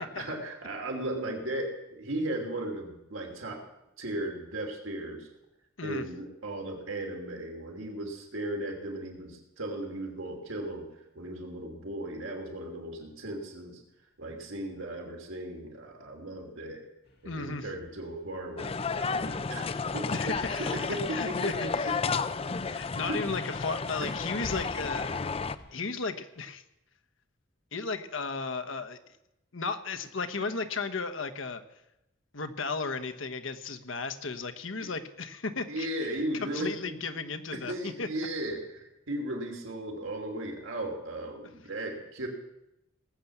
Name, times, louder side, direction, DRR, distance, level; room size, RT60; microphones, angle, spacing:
voice 1, 0.0-3.6 4.0-5.3 5.8-13.8 14.2-16.8 17.2-22.1 22.9-23.2 24.0-24.1 24.4-24.5 34.8-34.9 35.7-36.7 37.5-42.3, right 1 dB, 85° right, 2 dB, 3.0 m, -36 dB
sound 1, 17.0-25.7, left 1 dB, 50° left, 1.9 m, -50 dB
voice 2, 17.2-17.7 20.1-20.8 21.1-21.9 22.6-25.2 25.7-26.6 27.7-29.0 29.5-31.6 32.3-35.9 36.3-38.1, left 4 dB, 80° left, 8 dB, 1.1 m, -35 dB
sound 2, 18.6-25.6, left 4 dB, 30° left, 0.4 m, -32 dB
19.0 x 8.0 x 7.2 m, 0.89 s
head